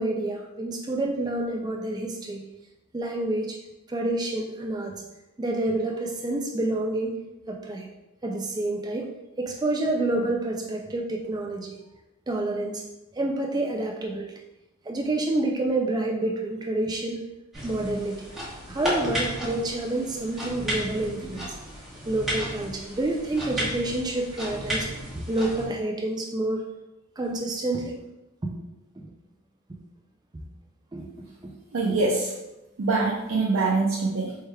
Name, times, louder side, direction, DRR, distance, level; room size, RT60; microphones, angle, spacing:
voice 1, 0.0-2.4 2.9-3.6 3.9-4.9 5.4-7.1 7.5-7.9 8.2-9.1 9.4-11.8 12.3-12.8 13.1-14.3 14.9-17.2 17.6-18.2 18.7-21.6 22.1-24.9 25.3-26.6 27.2-27.9 28.4-28.5 30.3-30.4 30.9-31.1 31.4-31.5, right 2 dB, 20° right, 1 dB, 0.3 m, -28 dB
sound 1, 17.5-25.7, equal, ahead, 1.0 m, -33 dB
voice 2, 31.7-32.3 32.8-34.4, right 3 dB, 80° right, -4 dB, 0.5 m, -24 dB
4.5 x 3.2 x 2.2 m, 0.97 s
head